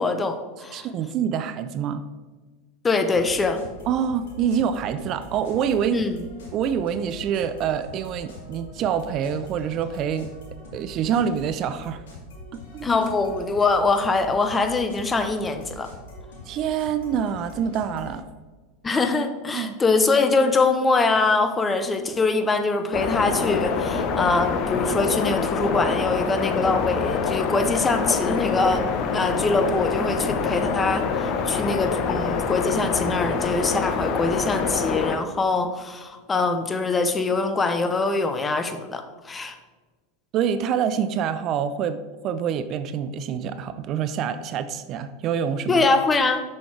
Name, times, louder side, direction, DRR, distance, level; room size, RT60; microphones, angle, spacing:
voice 1, 0.0-0.9 2.8-3.6 5.9-6.2 12.8-15.9 18.8-28.8 29.1-39.6 45.7-46.4, left 3 dB, 20° left, 8 dB, 0.9 m, -23 dB
voice 2, 0.7-2.1 3.9-6.0 6.5-10.3 10.7-12.0 12.7-12.9 16.5-18.2 19.5-19.8 40.3-42.0 42.2-45.9, right 8 dB, 45° right, 11 dB, 0.5 m, -26 dB
sound 1, 3.1-18.2, left 1 dB, 70° left, 2.5 m, -43 dB
sound 2, 22.9-35.2, left 5 dB, 45° left, 0.9 m, -25 dB
7.1 x 6.3 x 4.6 m, 1.3 s
hypercardioid pair, 90°, 0 cm